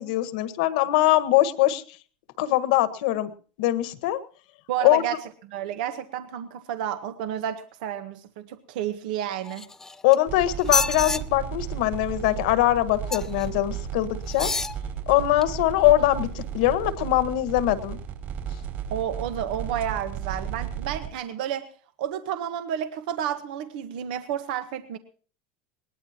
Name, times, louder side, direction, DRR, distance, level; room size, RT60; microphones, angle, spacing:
voice 1, 0.0-1.8 2.4-3.3 3.6-4.2 4.8-5.0 10.0-14.5 15.1-18.0, left 15 dB, 75° left, 12 dB, 1.6 m, -22 dB
voice 2, 4.7-5.2 5.5-9.7 18.9-21.7 22.0-25.0, right 10 dB, 75° right, 9 dB, 1.3 m, -31 dB
sound 1, 9.5-10.2 10.6-11.2 13.1-13.5 14.3-14.8 15.4-15.5, left 4 dB, 10° left, 0.8 m, -27 dB
sound 2, 10.3-21.1, right 9 dB, 50° right, 4.7 m, -34 dB
21.0 x 19.5 x 3.0 m, 0.42 s
supercardioid pair, 130°, 5 cm